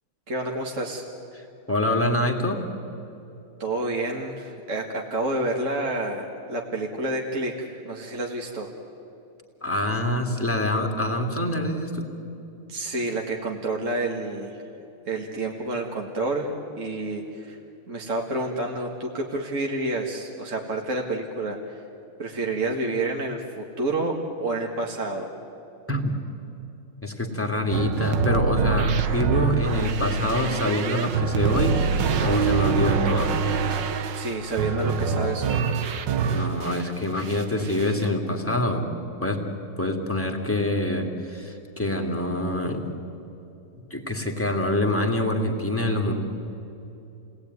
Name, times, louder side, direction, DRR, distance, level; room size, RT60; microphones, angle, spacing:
voice 1, 0.3-1.1 3.6-8.7 12.7-14.6 15.1-17.6 17.9-21.8 22.2-25.3 34.1-35.7, right 2 dB, 40° right, 0 dB, 2.1 m, -29 dB
voice 2, 1.3-2.6 9.6-12.1 25.9-26.1 27.0-31.8 32.2-33.3 36.3-38.9 39.2-39.4 39.8-42.8 43.9-46.1, left 1 dB, 5° left, 2 dB, 2.6 m, -25 dB
sound 1, 27.7-36.9 37.2-38.0, right 6 dB, 60° right, 1.7 m, -25 dB
30.0 x 19.0 x 9.6 m, 2.8 s
omnidirectional pair, 2.3 m